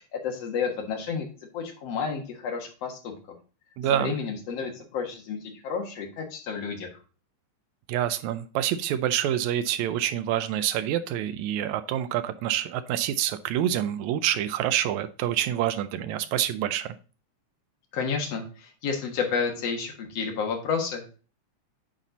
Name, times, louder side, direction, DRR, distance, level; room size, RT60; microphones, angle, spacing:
voice 1, 0.1-1.3 1.5-3.1 3.9-6.9 17.9-21.2, left 5 dB, 60° left, 3 dB, 2.4 m, -31 dB
voice 2, 3.8-4.1 7.9-17.0, right 11 dB, 80° right, 12 dB, 1.8 m, -27 dB
9.0 x 4.3 x 4.0 m, 0.36 s
omnidirectional pair, 3.5 m